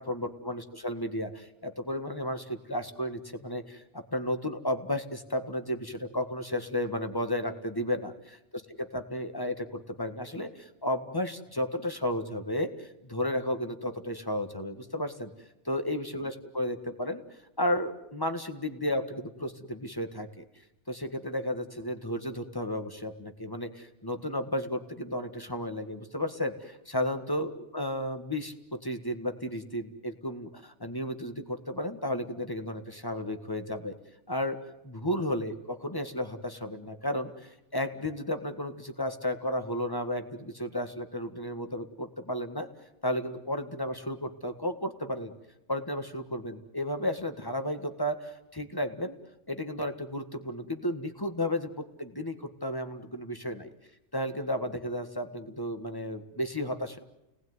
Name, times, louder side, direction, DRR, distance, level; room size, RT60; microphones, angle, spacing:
voice 1, 0.0-8.4 8.8-15.3 15.7-17.2 17.6-20.4 20.9-26.6 26.9-33.9 34.3-34.6 34.8-42.7 43.0-45.3 45.7-49.2 49.5-53.7 54.1-57.0, left 1 dB, 20° left, 8 dB, 1.7 m, -33 dB
30.0 x 19.0 x 9.6 m, 0.94 s
omnidirectional pair, 1.2 m